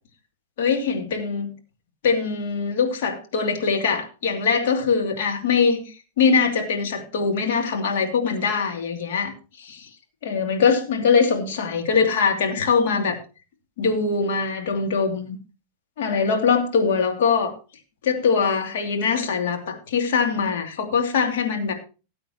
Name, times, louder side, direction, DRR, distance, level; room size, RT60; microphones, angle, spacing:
voice 1, 0.6-1.5 2.0-9.3 9.6-9.9 10.2-13.2 13.8-15.4 16.0-17.5 18.0-21.7, left 5 dB, 55° left, 3 dB, 2.7 m, -22 dB
18.5 x 8.4 x 2.9 m, 0.33 s
figure-of-eight pair, 90°, 0 cm